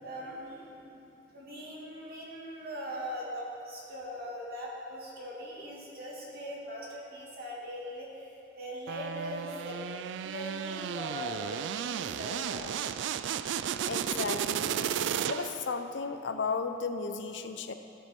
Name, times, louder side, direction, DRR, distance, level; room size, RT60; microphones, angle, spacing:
voice 1, 0.0-9.8 10.2-12.9, equal, 55° right, -4 dB, 2.3 m, -41 dB
sound 1, 8.9-15.7, right 8 dB, 80° right, 0.3 m, -34 dB
voice 2, 13.8-14.8 15.3-17.7, left 4 dB, 80° left, 8 dB, 0.6 m, -34 dB
14.5 x 7.4 x 4.5 m, 2.7 s
head